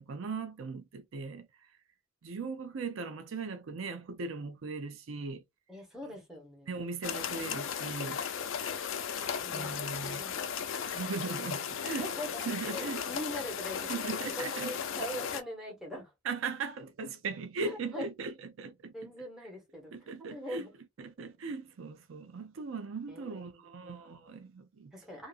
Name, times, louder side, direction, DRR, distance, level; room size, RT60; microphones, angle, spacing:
voice 1, 0.0-1.5 2.2-5.4 6.7-8.2 9.5-10.2 10.9-12.1 12.5-13.0 13.9-14.7 16.2-19.1 19.9-20.7 21.0-24.9, right 4 dB, 70° right, 0.5 m, -39 dB
voice 2, 5.7-6.8 9.4-10.5 11.8-16.1 17.6-18.1 18.9-19.9 20.3-20.7 23.1-24.0 24.9-25.3, equal, ahead, 1.1 m, -42 dB
sound 1, 7.0-15.4, left 7 dB, 65° left, 0.5 m, -36 dB
2.7 x 2.4 x 2.4 m
head